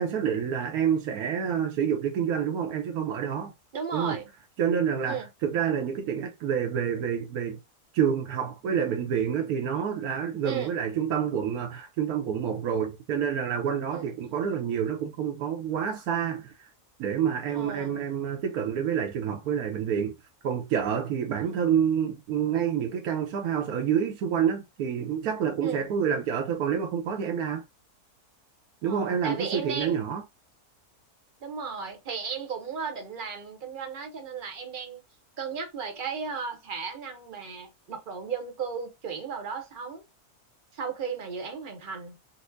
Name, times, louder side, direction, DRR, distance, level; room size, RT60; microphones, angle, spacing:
voice 1, 0.0-3.5 3.9-4.2 4.6-7.6 7.9-16.7 17.0-20.1 20.4-27.6 28.8-30.2, right 8 dB, 75° right, 1.1 m, -28 dB
voice 2, 3.7-4.3 5.1-5.3 10.4-10.8 13.9-14.3 17.5-18.0 21.3-21.8 25.6-25.9 28.8-30.0 31.4-35.0 35.4-40.0 40.7-42.2, right 6 dB, 40° right, 0.8 m, -35 dB
4.2 x 2.1 x 2.6 m
omnidirectional pair, 1.7 m